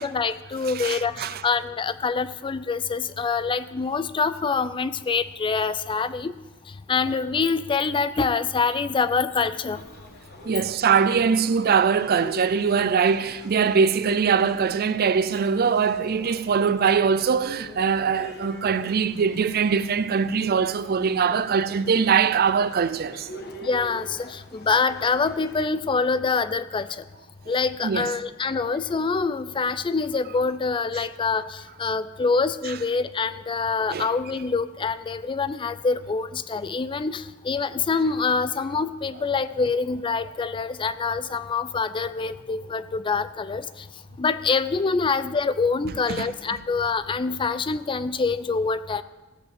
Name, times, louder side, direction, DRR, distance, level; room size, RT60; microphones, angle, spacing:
voice 1, 0.0-6.3 6.9-9.8 23.6-27.0 27.5-43.9 44.2-49.0, left 4 dB, 25° left, 0.4 m, -25 dB
voice 2, 0.7-1.4 10.5-23.3 27.8-28.1 33.9-34.1 46.1-46.3, right 6 dB, 45° right, 0.4 m, -22 dB
sound 1, 9.6-25.6, equal, 50° left, 1.3 m, -43 dB
15.0 x 5.5 x 7.5 m
head